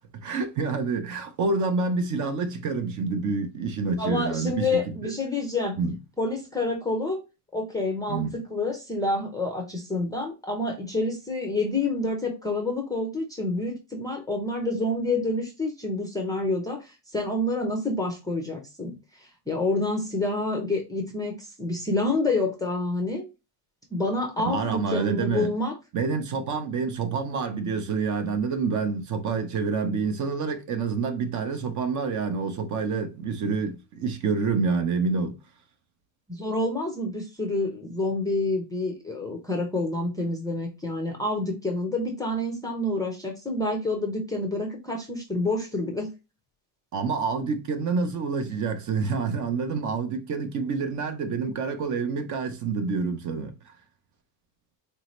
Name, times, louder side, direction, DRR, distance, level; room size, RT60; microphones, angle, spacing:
voice 1, 0.1-5.1 5.8-5.9 8.1-8.3 24.5-25.5 25.9-35.4 46.9-53.7, right 4 dB, 40° right, 0.6 m, -27 dB
voice 2, 4.0-5.8 6.2-7.2 7.5-23.2 23.9-25.7 36.3-46.1, left 2 dB, 10° left, 0.4 m, -28 dB
4.1 x 2.7 x 3.0 m
cardioid pair, 175°, 47 cm